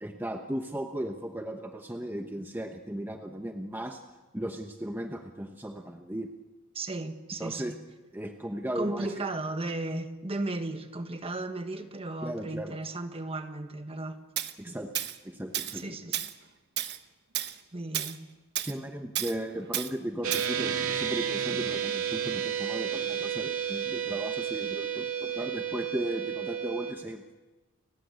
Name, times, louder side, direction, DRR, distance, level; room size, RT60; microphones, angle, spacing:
voice 1, 0.0-4.0 4.3-6.3 7.4-7.7 8.1-9.1 12.2-12.8 14.6-14.9 15.2-16.0 18.6-27.2, right 1 dB, 10° right, 4 dB, 1.1 m, -36 dB
voice 2, 6.7-7.8 8.7-14.2 14.7-14.8 15.7-16.2 17.7-18.2 21.5-21.6, right 2 dB, 25° right, 7 dB, 1.4 m, -35 dB
Tools, 14.4-14.5 15.0-15.2 15.5-15.8 16.1-16.3 16.8-17.0 17.3-17.6 17.9-18.2 18.6-18.7 19.2-19.4 19.7-19.9 20.3-20.5, right 12 dB, 50° right, 1.0 m, -32 dB
sound 1, 20.2-26.9, right 8 dB, 85° right, 2.6 m, -31 dB
30.0 x 15.5 x 8.3 m, 1.2 s
head